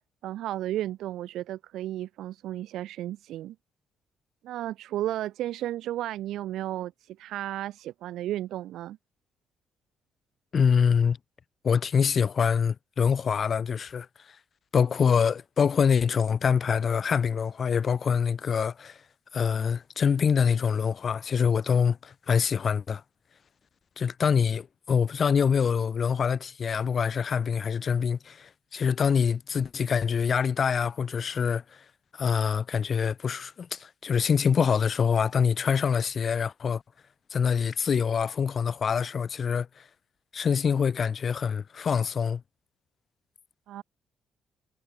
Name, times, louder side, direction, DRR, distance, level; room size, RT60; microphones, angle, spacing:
voice 1, 0.2-3.6 4.4-9.0 43.7-43.8, right 13 dB, 85° right, 7.2 m, -33 dB
voice 2, 10.5-11.2 11.6-14.1 14.7-19.0 19.3-23.0 24.0-31.6 32.2-36.8 37.3-39.7 40.3-42.4, left 6 dB, 50° left, 4.3 m, -25 dB
cardioid pair, 90°, 0 cm